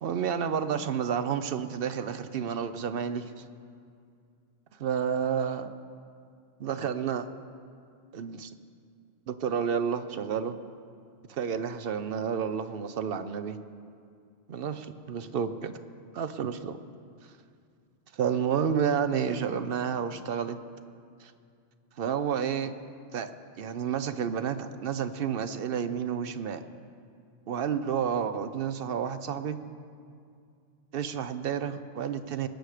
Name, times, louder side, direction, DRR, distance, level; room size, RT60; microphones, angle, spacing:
voice 1, 0.0-3.3 4.8-5.7 6.6-7.3 8.1-8.5 9.3-10.6 11.3-13.6 14.5-15.7 16.1-16.8 18.1-20.6 21.2-21.3 22.0-22.7 23.1-23.3 23.6-26.6 27.5-29.6 30.9-32.5, right 7 dB, 65° right, 11 dB, 0.8 m, -30 dB
20.5 x 8.1 x 4.9 m, 2.3 s
omnidirectional pair, 1.1 m